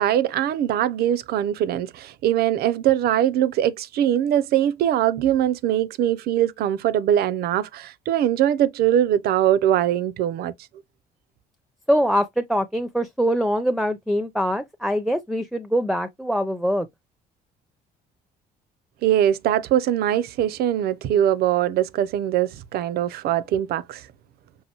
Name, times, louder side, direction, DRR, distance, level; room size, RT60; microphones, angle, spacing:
voice 1, 0.0-10.5 19.0-24.0, right 11 dB, 70° right, 0.5 m, -22 dB
voice 2, 11.9-16.9, equal, ahead, 0.5 m, -23 dB
5.5 x 2.5 x 2.9 m
cardioid pair, 110°, 17 cm